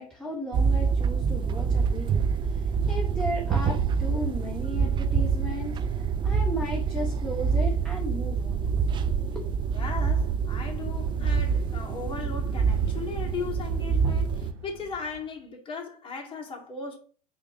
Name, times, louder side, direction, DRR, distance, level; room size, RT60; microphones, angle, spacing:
voice 1, 0.0-8.6 9.3-9.4, equal, 5° left, 2.1 m, -35 dB
sound 1, 0.5-14.5, right 6 dB, 25° right, 0.6 m, -26 dB
voice 2, 9.7-17.0, left 5 dB, 25° left, 2.3 m, -37 dB
sound 2, 10.6-15.4, right 7 dB, 55° right, 1.0 m, -42 dB
8.1 x 3.1 x 5.9 m
figure-of-eight pair, 85°, 20 cm